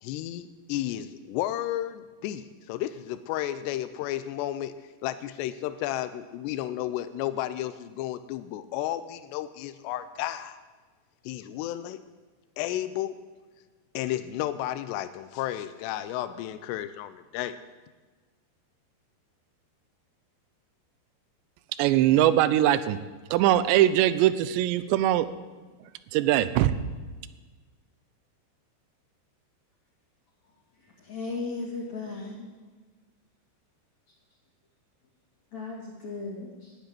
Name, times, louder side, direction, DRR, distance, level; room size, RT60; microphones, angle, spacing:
voice 1, 0.0-4.7 5.0-10.6 11.2-12.0 12.6-13.2 13.9-17.6, left 13 dB, 85° left, 11 dB, 2.7 m, -32 dB
voice 2, 21.8-23.0 23.3-25.3 26.1-26.8, right 13 dB, 85° right, 14 dB, 2.9 m, -21 dB
voice 3, 30.8-32.6 35.5-36.8, left 3 dB, 45° left, -5 dB, 3.2 m, -36 dB
11.5 x 9.1 x 9.8 m, 1.4 s
omnidirectional pair, 5.0 m